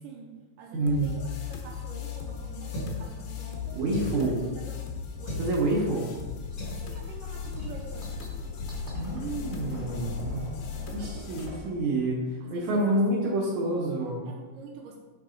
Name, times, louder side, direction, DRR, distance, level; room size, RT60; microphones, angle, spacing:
voice 1, 0.0-3.8 4.2-4.8 5.2-5.9 6.8-8.2 10.8-11.9 12.4-13.2 13.5-14.0 14.3-15.0, right 4 dB, 90° right, 1 dB, 1.9 m, -46 dB
voice 2, 0.7-1.1 3.7-4.4 5.4-6.1 8.9-10.5 10.9-12.2 12.5-14.2, right 2 dB, 70° right, -5 dB, 1.8 m, -28 dB
sound 1, 0.9-11.5, left 7 dB, 75° left, 2.7 m, -37 dB
sound 2, 2.7-3.1 3.9-4.3 5.2-5.5 6.6-6.8 7.6-7.8 8.0-8.2 8.5-8.7, right 1 dB, 55° left, 1.0 m, -36 dB
sound 3, 6.5-11.7, right 1 dB, 25° left, 1.0 m, -44 dB
8.8 x 4.0 x 3.8 m, 1.3 s
omnidirectional pair, 4.6 m